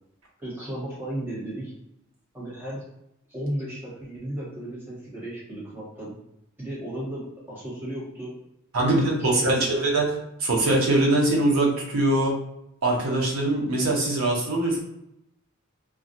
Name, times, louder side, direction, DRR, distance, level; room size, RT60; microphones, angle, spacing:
voice 1, 0.4-1.7 2.3-2.8 3.3-6.1 6.6-7.2 7.5-8.3 8.8-9.8, right 1 dB, 10° right, -9 dB, 1.1 m, -34 dB
voice 2, 8.7-10.1 10.4-12.3 12.8-14.8, right 2 dB, 85° right, -2 dB, 0.7 m, -22 dB
2.3 x 2.1 x 2.6 m, 0.82 s
head